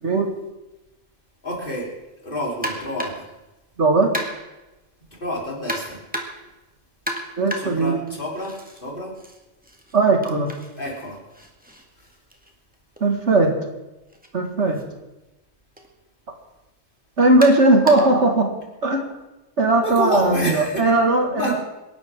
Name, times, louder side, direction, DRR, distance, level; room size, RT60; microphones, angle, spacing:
voice 1, 1.4-1.9 2.2-3.3 5.1-6.0 7.6-8.5 8.8-9.1 10.8-11.2 12.0-12.1 19.8-21.0 21.3-21.5, equal, 40° left, -3 dB, 4.1 m, -28 dB
sound 1, 2.6-3.3 4.1-4.6 5.7-6.5 7.1-8.8 9.1-13.0 14.1-14.3 14.7-14.8 15.8-15.9 17.4-18.2, equal, 5° right, 1.8 m, -34 dB
voice 2, 3.8-4.1 7.4-8.0 9.9-10.5 13.0-13.5 14.3-14.8 17.2-18.5 18.8-19.0 19.6-21.5, right 2 dB, 65° right, 3 dB, 2.3 m, -18 dB
27.0 x 11.5 x 3.7 m, 1.0 s
omnidirectional pair, 1.3 m